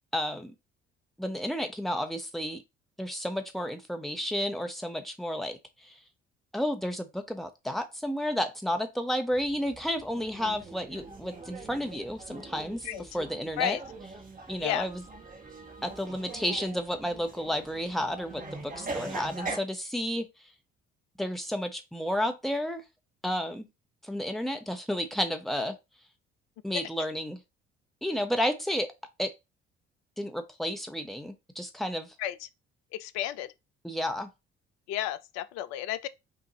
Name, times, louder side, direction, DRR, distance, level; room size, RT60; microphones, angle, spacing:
voice 1, 0.1-0.5 1.2-2.6 3.0-5.6 5.8-5.9 6.5-12.9 13.1-13.8 14.5-15.0 15.8-20.3 21.2-22.8 23.2-23.7 24.0-25.8 26.6-27.4 28.0-28.9 29.2-29.3 30.2-32.1 33.8-34.3, equal, ahead, 1.0 m, -31 dB
sound 1, 9.3-19.6, right 3 dB, 25° right, 1.1 m, -42 dB
voice 2, 32.9-33.5 34.9-36.1, left 13 dB, 60° left, 0.5 m, -32 dB
5.7 x 2.5 x 3.0 m
figure-of-eight pair, 50°, 30 cm